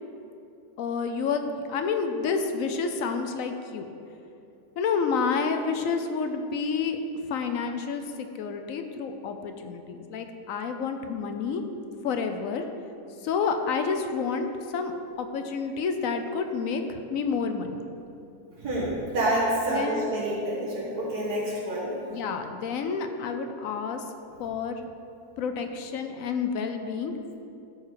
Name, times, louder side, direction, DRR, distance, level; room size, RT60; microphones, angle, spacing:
voice 1, 0.8-3.9 4.8-7.0 7.3-11.6 12.0-12.6 13.2-14.9 15.2-17.8 19.7-20.1 22.1-24.0 24.4-24.8 25.4-27.3, left 5 dB, 65° left, 6 dB, 1.0 m, -29 dB
voice 2, 18.5-21.9, right 1 dB, 70° right, -7 dB, 1.8 m, -28 dB
13.0 x 4.9 x 4.7 m, 2.7 s
omnidirectional pair, 1.7 m